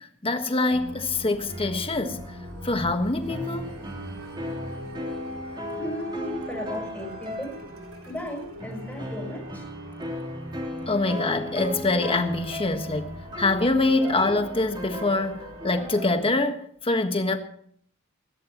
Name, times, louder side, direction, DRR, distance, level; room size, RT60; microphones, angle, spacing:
voice 1, 0.0-2.2 2.6-3.8 10.9-17.4, left 2 dB, 25° left, 1.5 m, -25 dB
sound 1, 0.7-16.2, equal, 70° right, 2.9 m, -41 dB
sound 2, 1.5-2.6 3.3-8.0 8.6-16.1, equal, 20° right, 3.6 m, -37 dB
voice 2, 5.7-7.6 8.0-9.6, equal, 5° left, 5.1 m, -35 dB
20.5 x 16.0 x 3.0 m
head